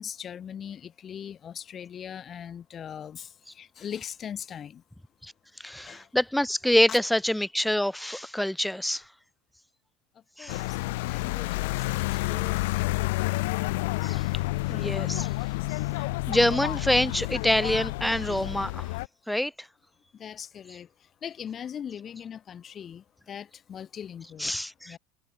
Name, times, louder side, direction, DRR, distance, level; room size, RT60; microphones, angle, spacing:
voice 1, 0.0-4.8 5.9-6.1 6.9-7.0 10.4-12.9 20.2-20.9 21.2-24.6 24.9-25.0, left 8 dB, 30° left, 2.0 m, -40 dB
voice 2, 5.6-9.0 10.4-10.6 14.0-14.3 14.7-15.3 15.7-19.0 19.3-19.7 24.4-25.0, left 1 dB, ahead, 0.9 m, -26 dB
sound 1, 10.5-19.1, left 22 dB, 75° left, 2.8 m, -29 dB
supercardioid pair, 135°, 0 cm